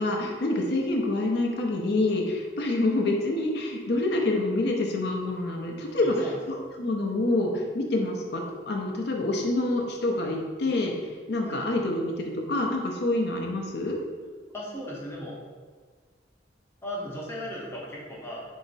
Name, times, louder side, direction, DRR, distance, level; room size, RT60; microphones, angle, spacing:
voice 1, 0.0-11.0 11.3-14.0, left 2 dB, 65° left, 1 dB, 0.5 m, -27 dB
voice 2, 6.0-6.4 11.4-11.6 14.5-15.4 16.8-18.4, equal, 15° left, -5 dB, 0.8 m, -36 dB
4.5 x 2.0 x 4.0 m, 1.5 s
head